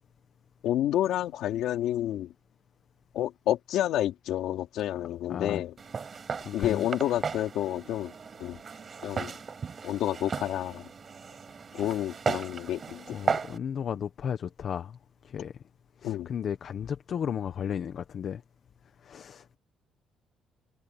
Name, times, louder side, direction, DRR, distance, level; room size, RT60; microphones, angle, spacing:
voice 1, 0.6-2.3 3.1-5.7 6.5-8.1 8.4-8.6 9.0-9.3 9.8-10.8 11.7-13.0 16.0-16.3, left 12 dB, 75° left, 3.8 m, -29 dB
voice 2, 5.3-5.6 6.4-6.9 11.8-12.0 13.1-15.0 15.2-15.5 16.0-18.4 19.0-19.6, left 8 dB, 40° left, 1.1 m, -34 dB
Walk footsteps, 5.8-13.6, right 5 dB, 30° right, 7.6 m, -35 dB
cardioid pair, 165°, 0 cm